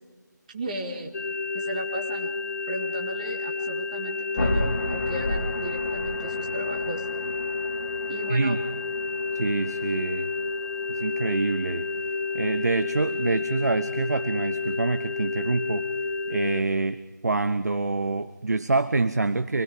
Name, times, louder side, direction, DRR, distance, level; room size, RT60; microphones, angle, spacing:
voice 1, 0.5-1.1 1.5-2.3 2.7-7.1 8.1-8.6, right 1 dB, 25° right, 1 dB, 2.0 m, -35 dB
sound 1, 1.1-16.6, left 4 dB, 55° left, 1.1 m, -30 dB
sound 2, 4.4-12.4, left 1 dB, 25° left, 5.4 m, -34 dB
voice 2, 8.3-8.6 9.3-10.3 10.9-11.9 12.3-15.9 16.3-19.6, right 3 dB, 60° right, 12 dB, 0.9 m, -26 dB
26.0 x 20.5 x 5.1 m, 1.3 s
figure-of-eight pair, 165°, 10 cm